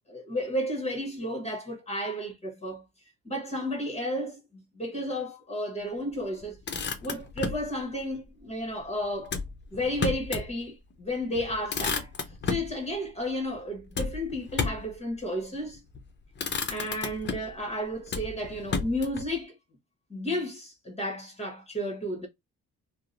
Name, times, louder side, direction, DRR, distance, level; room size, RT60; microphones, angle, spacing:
voice 1, 0.1-2.8 3.2-4.4 4.7-6.6 7.0-9.3 9.7-12.1 12.4-15.8 16.7-19.6 20.1-22.3, equal, 20° left, 1.1 m, -32 dB
Motor vehicle (road), 6.4-7.7 9.3-10.5 10.9-11.0 11.3-12.7 13.9-14.9 15.8-16.0 16.4-17.6 18.1-19.3, left 5 dB, 35° left, 0.6 m, -32 dB
2.7 x 2.0 x 2.5 m
cardioid pair, 90°, 30 cm